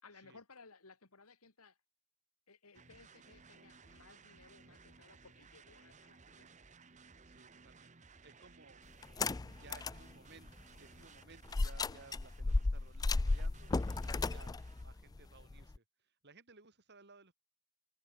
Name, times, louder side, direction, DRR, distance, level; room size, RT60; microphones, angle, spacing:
voice 1, 0.0-1.8 2.5-6.5 14.0-14.3, left 4 dB, 85° left, 2.6 m, -60 dB
sound 1, 2.7-14.8, right 4 dB, 35° right, 1.1 m, -60 dB
voice 2, 7.2-8.8 9.3-10.5 10.8-17.3, right 3 dB, 50° right, 2.7 m, -60 dB
sound 2, 9.0-10.0 10.5-10.6 11.5-15.8, left 3 dB, 15° left, 0.3 m, -34 dB
open air
head